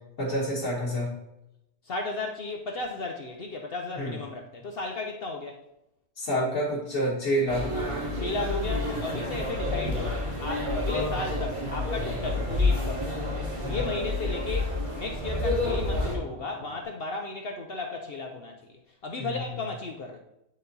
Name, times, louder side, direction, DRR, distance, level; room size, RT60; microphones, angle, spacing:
voice 1, 0.2-1.1 4.0-4.2 6.2-8.0 13.6-13.8 19.2-19.4, equal, 90° left, -7 dB, 2.1 m, -28 dB
voice 2, 1.8-5.6 8.2-13.2 13.6-20.2, left 3 dB, 55° left, 3 dB, 0.8 m, -35 dB
sound 1, 7.5-16.2, left 2 dB, 25° right, 1.4 m, -29 dB
Fixed-wing aircraft airplane, 9.8-16.8, left 1 dB, 55° right, 3.6 m, -47 dB
9.4 x 4.1 x 4.0 m, 0.85 s
omnidirectional pair, 1.3 m